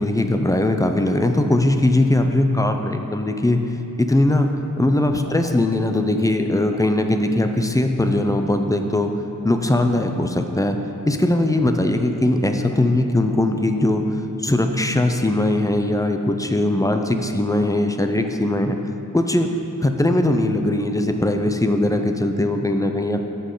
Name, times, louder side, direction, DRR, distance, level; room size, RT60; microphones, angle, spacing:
voice 1, 0.0-3.6 4.0-4.5 4.8-9.1 9.4-10.8 11.0-14.0 14.4-18.8 19.1-19.5 19.8-23.2, left 1 dB, 10° left, 5 dB, 0.5 m, -20 dB
14.5 x 5.4 x 3.9 m, 2.8 s
wide cardioid pair, 105°, 37 cm